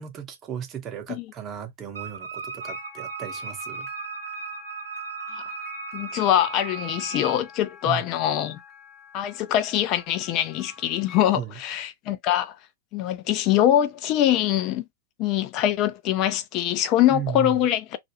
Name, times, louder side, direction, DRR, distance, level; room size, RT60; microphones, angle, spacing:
voice 1, 0.0-3.9 7.8-8.1 11.3-11.6 17.1-17.7, right 8 dB, 30° right, 0.8 m, -35 dB
Wind instrument woodwind instrument, 1.9-7.4, right 5 dB, 75° right, 0.7 m, -36 dB
sound 1, 2.6-11.3, left 6 dB, 5° left, 0.7 m, -46 dB
voice 2, 5.9-8.6 9.1-12.6 12.9-14.9 15.2-18.0, left 11 dB, 40° left, 0.5 m, -23 dB
2.5 x 2.3 x 2.8 m
figure-of-eight pair, 95°, 0 cm